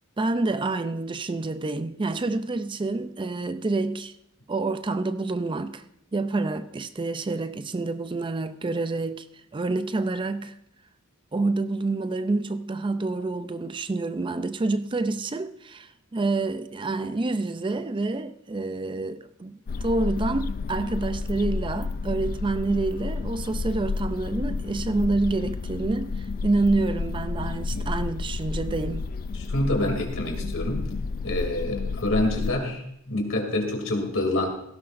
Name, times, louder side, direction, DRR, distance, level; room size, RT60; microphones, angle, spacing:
voice 1, 0.2-4.1 4.5-5.8 6.1-9.3 9.5-10.5 11.3-29.0, right 3 dB, 25° right, 0.4 m, -28 dB
sound 1, 19.7-32.5, left 4 dB, 40° left, 0.4 m, -31 dB
voice 2, 29.3-30.8 31.2-34.5, left 1 dB, 65° left, 2.7 m, -27 dB
17.5 x 16.0 x 2.6 m
head